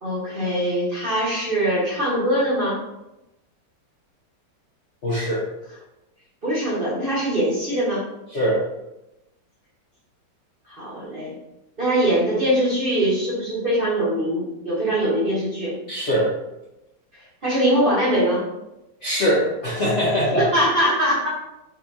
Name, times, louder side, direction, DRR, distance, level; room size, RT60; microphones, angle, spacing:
voice 1, 0.0-2.8 6.4-8.0 10.7-11.3 11.8-15.7 17.1-18.4 20.1-21.3, right 1 dB, 30° right, -8 dB, 1.4 m, -22 dB
voice 2, 5.0-5.5 8.3-8.6 15.9-16.3 19.0-20.4, equal, 50° left, -7 dB, 1.0 m, -22 dB
4.5 x 4.2 x 2.7 m, 0.93 s
omnidirectional pair, 2.0 m